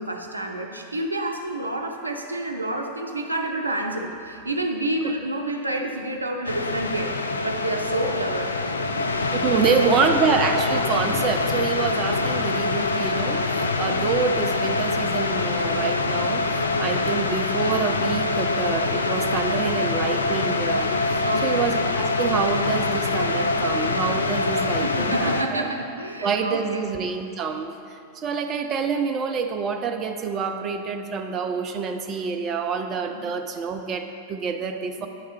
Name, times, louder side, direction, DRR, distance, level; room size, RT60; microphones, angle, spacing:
voice 1, 0.0-9.0 9.5-10.1 13.8-14.0 21.2-21.6 24.8-26.8 33.1-33.3, right 1 dB, 80° right, 3 dB, 0.5 m, -29 dB
sound 1, 6.4-25.4, left 3 dB, 75° left, 0.3 m, -24 dB
voice 2, 9.3-25.7 26.2-35.1, right 6 dB, 30° right, 5 dB, 0.4 m, -27 dB
9.7 x 3.6 x 4.1 m, 2.7 s
figure-of-eight pair, 90°, 0 cm